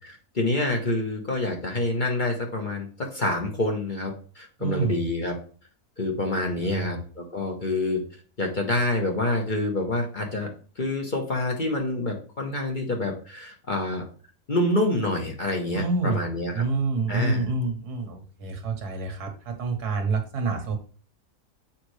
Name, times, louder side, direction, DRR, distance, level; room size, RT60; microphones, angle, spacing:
voice 1, 0.0-5.3 6.0-8.0 8.4-10.5 10.8-14.0 14.5-16.6 17.1-17.5, left 2 dB, 35° left, 1 dB, 1.1 m, -27 dB
voice 2, 4.6-5.0 6.6-6.9 15.7-16.2 16.5-20.8, right 3 dB, 80° right, 4 dB, 1.8 m, -27 dB
7.2 x 5.1 x 3.2 m, 0.41 s
omnidirectional pair, 1.6 m